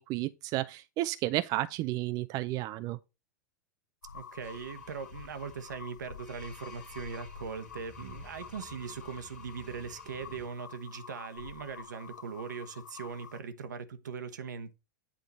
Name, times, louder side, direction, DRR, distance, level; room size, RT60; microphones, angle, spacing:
voice 1, 0.0-3.0, right 16 dB, 40° right, 0.4 m, -32 dB
sound 1, 4.0-13.4, left 7 dB, 80° left, 0.7 m, -48 dB
voice 2, 4.1-14.7, right 5 dB, 80° right, 1.0 m, -40 dB
sound 2, 4.4-10.5, left 2 dB, 10° left, 1.9 m, -55 dB
8.6 x 3.8 x 4.2 m
hypercardioid pair, 100°, 10 cm